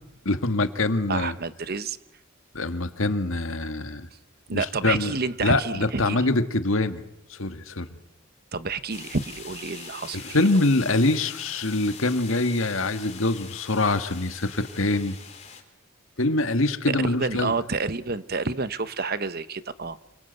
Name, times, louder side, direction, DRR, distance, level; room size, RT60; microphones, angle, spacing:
voice 1, 0.2-1.3 2.5-4.1 4.5-5.1 5.4-8.0 10.1-15.2 16.2-17.5, left 2 dB, 75° left, 8 dB, 1.8 m, -24 dB
voice 2, 1.1-2.0 4.5-6.2 8.5-10.4 16.9-20.0, right 4 dB, 50° right, 13 dB, 1.0 m, -29 dB
sound 1, 8.9-15.6, left 7 dB, 35° left, 3.9 m, -43 dB
28.5 x 24.0 x 8.2 m, 0.83 s
head